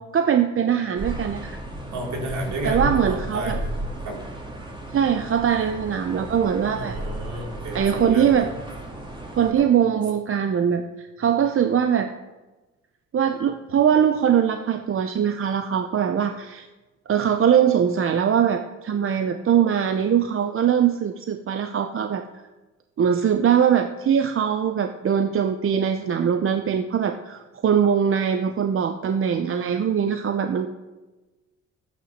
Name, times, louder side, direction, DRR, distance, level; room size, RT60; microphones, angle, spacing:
voice 1, 0.0-1.5 2.6-3.6 4.9-7.0 7.7-8.5 9.4-12.1 13.1-16.7 17.1-22.2 23.0-30.7, right 8 dB, 45° right, 7 dB, 0.7 m, -22 dB
sound 1, 1.0-9.5, right 1 dB, 15° right, 2.3 m, -34 dB
voice 2, 1.9-4.2 6.7-8.4, right 1 dB, 70° right, 0 dB, 3.5 m, -31 dB
12.0 x 9.1 x 6.6 m, 1.2 s
cardioid pair, 90°, 30 cm